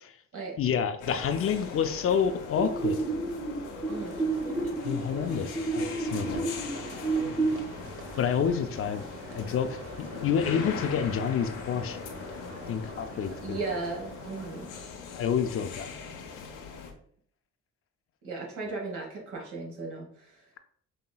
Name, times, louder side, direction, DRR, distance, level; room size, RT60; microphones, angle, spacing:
voice 1, 0.5-3.0 4.8-6.5 6.9-7.3 8.2-9.1 9.3-12.0 12.7-13.6 15.1-15.9, left 7 dB, 50° left, 8 dB, 0.5 m, -29 dB
sound 1, 1.0-16.9, left 5 dB, 85° left, 0.8 m, -41 dB
sound 2, 2.6-7.6, right 3 dB, 15° right, 0.9 m, -30 dB
sound 3, 3.9-14.9, right 3 dB, 45° right, 0.9 m, -47 dB
voice 2, 13.4-14.7 18.2-20.4, right 3 dB, 75° right, -1 dB, 1.5 m, -36 dB
5.5 x 2.8 x 2.3 m, 0.62 s
cardioid pair, 90°, 30 cm